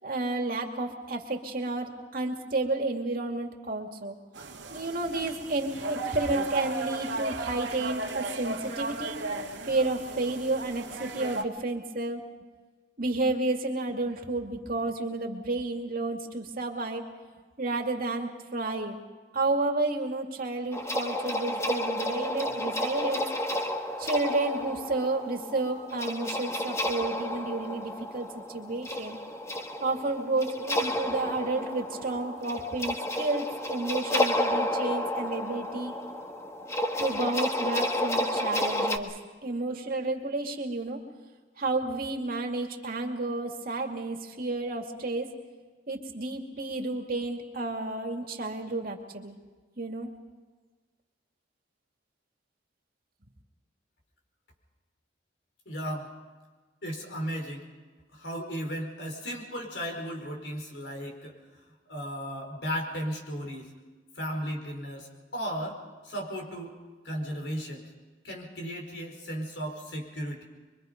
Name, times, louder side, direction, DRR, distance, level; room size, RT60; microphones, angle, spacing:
voice 1, 0.0-4.2 4.7-9.2 9.7-12.2 13.0-17.1 17.6-19.0 19.3-23.3 24.0-29.2 29.8-35.9 37.0-39.1 39.4-41.0 41.6-45.3 45.9-49.3 49.8-50.1, right 2 dB, 50° right, 2 dB, 2.5 m, -31 dB
sound 1, 4.3-11.4, right 2 dB, 85° right, 2.3 m, -36 dB
sound 2, 20.7-39.0, left 1 dB, 15° left, 1.5 m, -31 dB
voice 2, 55.7-56.1 56.8-57.7 58.1-61.3 61.9-63.7 64.2-66.7 67.0-67.8 68.2-70.4, equal, 70° left, 2 dB, 4.9 m, -35 dB
25.0 x 23.5 x 5.3 m, 1.4 s
head